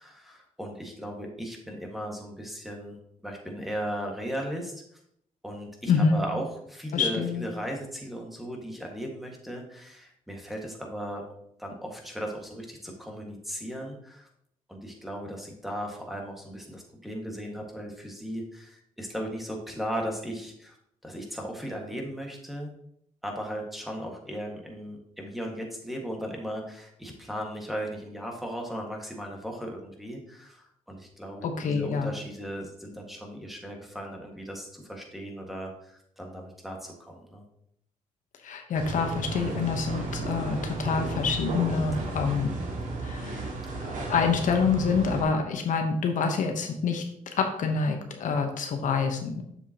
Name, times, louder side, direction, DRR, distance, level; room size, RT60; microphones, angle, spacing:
voice 1, 0.0-3.0 3.2-5.0 5.4-11.2 11.6-14.3 14.7-20.8 21.0-22.7 23.2-37.4 41.9-42.2, equal, ahead, 1 dB, 1.7 m, -37 dB
voice 2, 5.9-6.2 6.9-7.4 31.4-32.1 38.4-42.5 43.0-43.5 44.1-47.0 47.4-49.4, left 5 dB, 75° left, 4 dB, 1.0 m, -26 dB
sound 1, 38.7-45.2, right 2 dB, 70° right, 1.9 m, -34 dB
7.1 x 7.0 x 2.9 m, 0.72 s
cardioid pair, 90°, 13 cm